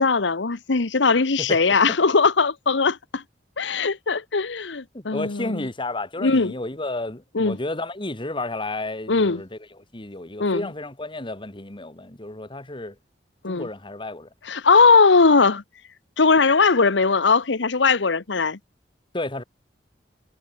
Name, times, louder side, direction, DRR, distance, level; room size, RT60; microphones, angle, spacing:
voice 1, 0.0-3.2 3.6-5.7 6.2-6.5 7.3-7.6 9.1-9.4 10.4-10.7 13.4-13.7 14.4-15.6 16.2-18.6, left 4 dB, 85° left, 1.0 m, -19 dB
voice 2, 4.9-9.6 9.9-12.9 13.5-14.3 19.1-19.4, left 2 dB, 30° left, 2.3 m, -32 dB
head